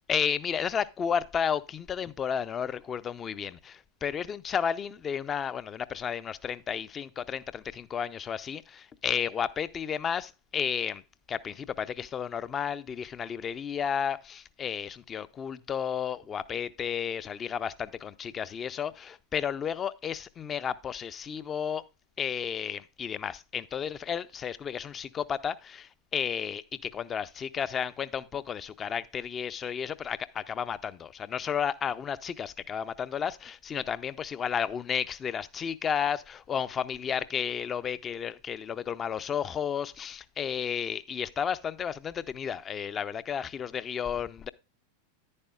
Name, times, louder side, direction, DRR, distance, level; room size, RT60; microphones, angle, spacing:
voice 1, 0.1-11.0 11.3-21.8 22.2-44.5, left 7 dB, 25° left, 0.5 m, -32 dB
10.0 x 9.7 x 2.4 m
figure-of-eight pair, 90°, 0 cm